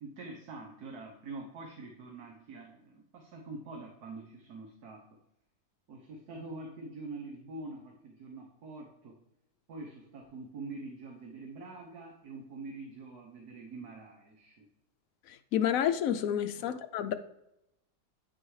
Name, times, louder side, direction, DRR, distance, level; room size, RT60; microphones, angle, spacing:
voice 1, 0.0-5.0 5.9-9.2 9.7-14.7 16.6-16.7, right 3 dB, 75° right, 1.5 m, -45 dB
voice 2, 15.2-17.1, left 9 dB, 70° left, 0.9 m, -30 dB
9.6 x 6.2 x 3.2 m
omnidirectional pair, 1.7 m